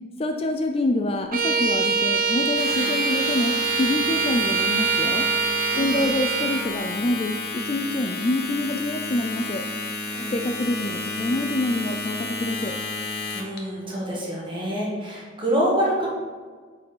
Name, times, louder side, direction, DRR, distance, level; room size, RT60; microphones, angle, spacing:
voice 1, 0.2-5.3 5.7-9.6 10.3-12.8, left 2 dB, 30° left, 5 dB, 0.4 m, -26 dB
Bowed string instrument, 1.3-6.7, right 5 dB, 50° right, 0.6 m, -24 dB
Domestic sounds home sounds, 2.5-13.6, left 3 dB, 60° left, 1.1 m, -31 dB
voice 2, 5.7-6.1 10.1-10.3 13.3-16.1, equal, 25° right, -4 dB, 1.9 m, -26 dB
8.6 x 4.8 x 4.6 m, 1.5 s
head